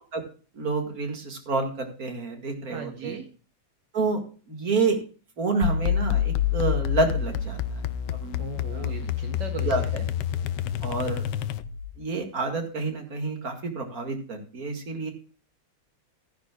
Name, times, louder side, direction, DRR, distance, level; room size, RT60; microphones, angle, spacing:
voice 1, 0.5-3.2 3.9-4.2 4.5-5.0 5.4-7.8 8.1-8.4 8.7-8.9 9.6-9.8 10.8-11.2 12.0-15.1, right 3 dB, 50° right, 4 dB, 2.4 m, -28 dB
voice 2, 2.7-3.3 8.4-10.0, right 6 dB, 75° right, 5 dB, 1.6 m, -38 dB
sound 1, 5.6-12.0, left 10 dB, 75° left, 1.3 m, -28 dB
15.5 x 10.5 x 2.3 m, 0.37 s
omnidirectional pair, 2.0 m